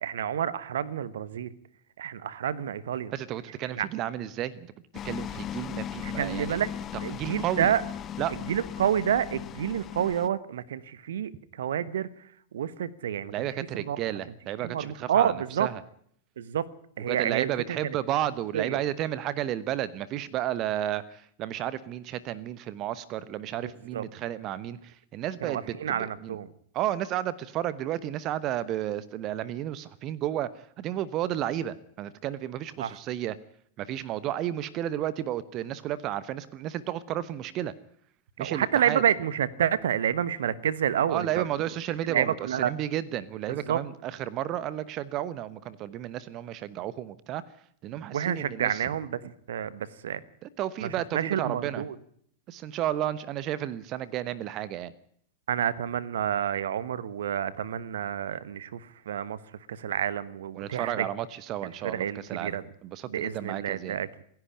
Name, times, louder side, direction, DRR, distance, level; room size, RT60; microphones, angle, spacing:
voice 1, 0.0-1.5 2.0-3.1 3.7-3.9 6.0-6.7 7.0-7.8 8.5-12.1 12.5-13.3 13.9-14.0 14.6-15.7 16.4-16.7 17.0-17.8 18.5-18.8 23.9-24.0 25.4-26.5 32.8-33.0 38.4-41.4 42.1-42.7 43.7-43.8 48.1-50.2 50.8-51.9 55.5-59.4 59.7-61.1 61.8-62.6 63.1-64.2, right 9 dB, 60° right, 18 dB, 1.1 m, -29 dB
voice 2, 3.1-4.7 5.0-6.6 6.9-7.7 8.2-8.4 13.3-15.8 17.1-26.4 26.7-33.4 33.8-37.7 38.4-39.0 41.1-47.4 47.8-48.8 50.4-51.8 52.5-54.9 60.5-64.0, right 12 dB, 35° right, 18 dB, 1.0 m, -32 dB
sound 1, 4.9-10.3, left 10 dB, 30° left, 0.8 m, -37 dB
27.5 x 11.0 x 9.7 m, 0.65 s
figure-of-eight pair, 90°, 0 cm